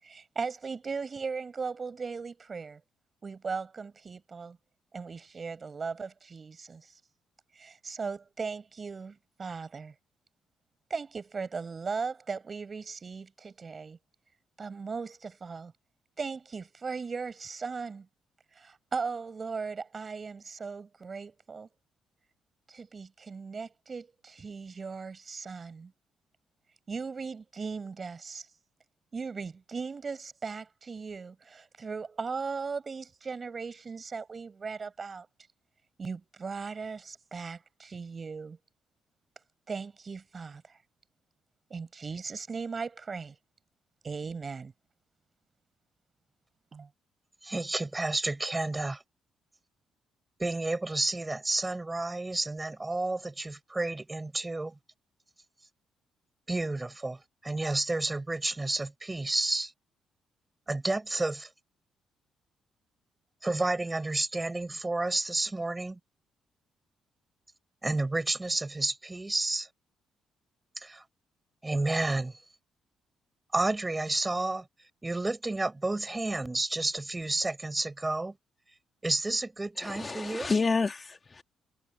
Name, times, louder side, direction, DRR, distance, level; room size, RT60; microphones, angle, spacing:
voice 1, 0.0-2.8 3.2-4.6 4.9-6.9 7.6-9.9 10.9-14.0 14.6-15.7 16.2-18.1 18.5-21.7 22.7-25.9 26.9-28.5 29.1-35.3 36.0-38.6 39.7-40.8 41.7-43.4 44.0-44.7 46.7-46.9, right 5 dB, 35° right, 7.4 m, -38 dB
voice 2, 47.4-49.0 50.4-54.7 56.5-59.7 60.7-61.5 63.4-66.0 67.8-69.7 70.8-71.0 71.6-72.4 73.5-74.7 75.0-78.4 79.0-80.5, right 2 dB, 15° right, 6.2 m, -31 dB
voice 3, 79.8-81.4, left 4 dB, 30° left, 2.1 m, -29 dB
cardioid pair, 90°, 0 cm